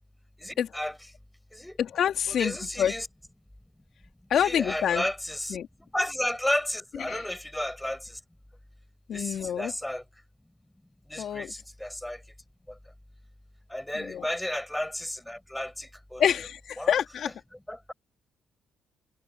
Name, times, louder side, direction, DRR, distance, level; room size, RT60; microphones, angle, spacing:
voice 1, 0.4-1.1 1.5-1.8 2.3-3.1 4.3-5.6 5.9-8.2 9.1-10.0 11.1-12.2 13.7-16.2 16.8-17.0 17.3-17.4 17.7-17.9, left 1 dB, 5° left, 6.9 m, -33 dB
voice 2, 1.8-2.9 4.3-5.0 5.5-5.7 7.1-7.2 9.1-9.7 11.2-11.5 14.0-14.2 16.2-17.3, left 9 dB, 65° left, 3.0 m, -27 dB
cardioid pair, 90°, 0 cm